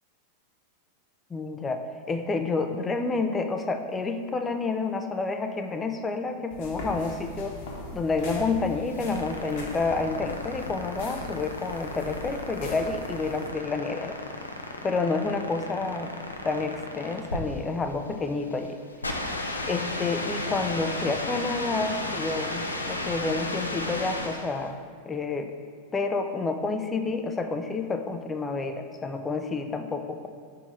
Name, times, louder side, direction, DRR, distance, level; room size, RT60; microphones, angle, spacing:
voice 1, 1.3-7.5 7.9-14.2 14.8-16.1 16.4-18.8 19.7-24.8 25.1-25.5 25.9-30.3, left 3 dB, 15° left, 6 dB, 0.4 m, -29 dB
sound 1, 6.5-13.5, left 2 dB, 45° left, 1.0 m, -40 dB
sound 2, 8.7-24.6, left 2 dB, 80° left, 0.5 m, -34 dB
5.5 x 4.1 x 4.9 m, 2.2 s
figure-of-eight pair, 90°, 0 cm